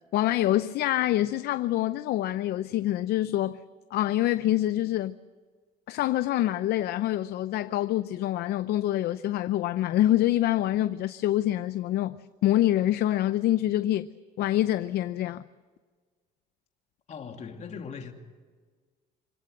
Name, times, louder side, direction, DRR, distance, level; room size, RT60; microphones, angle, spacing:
voice 1, 0.1-3.6 3.9-5.1 5.9-14.1 14.4-15.4, left 14 dB, 70° left, 0.6 m, -26 dB
voice 2, 17.1-18.1, left 6 dB, 45° left, 2.5 m, -39 dB
25.0 x 17.5 x 7.8 m
cardioid pair, 110°, 17 cm